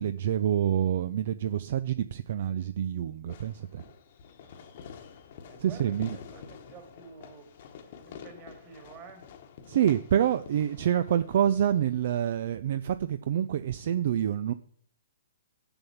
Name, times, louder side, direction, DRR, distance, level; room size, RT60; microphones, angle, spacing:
voice 1, 0.0-3.8 5.6-6.2 9.7-14.5, right 10 dB, 55° right, 0.5 m, -27 dB
Fireworks, 3.3-12.3, left 7 dB, 50° left, 1.2 m, -49 dB
voice 2, 4.4-9.3, right 5 dB, 30° right, 2.3 m, -51 dB
7.2 x 6.9 x 7.1 m
hypercardioid pair, 145°, 0 cm